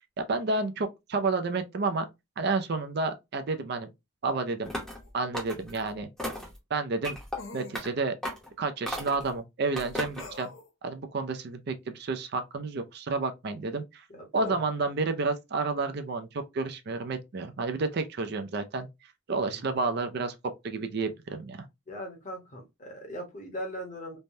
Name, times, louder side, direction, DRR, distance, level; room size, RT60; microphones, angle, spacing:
voice 1, 0.2-2.1 2.4-3.9 4.2-4.7 5.1-6.1 6.7-7.2 7.5-8.1 8.6-10.5 10.8-14.0 14.3-18.9 19.3-20.3 20.6-21.6, right 3 dB, 50° right, 0.4 m, -30 dB
sound 1, 4.7-5.0 5.3-5.8 6.2-6.6 7.0-7.4 7.7-7.9 8.2-8.5 8.9-9.3 9.8-10.3, equal, ahead, 0.7 m, -35 dB
sound 2, 5.0-5.1 7.4-7.8 10.2-10.7, left 3 dB, 65° left, 0.7 m, -44 dB
voice 2, 14.1-14.6 19.4-19.7 21.9-24.2, equal, 35° left, 0.9 m, -39 dB
3.2 x 2.1 x 2.6 m
head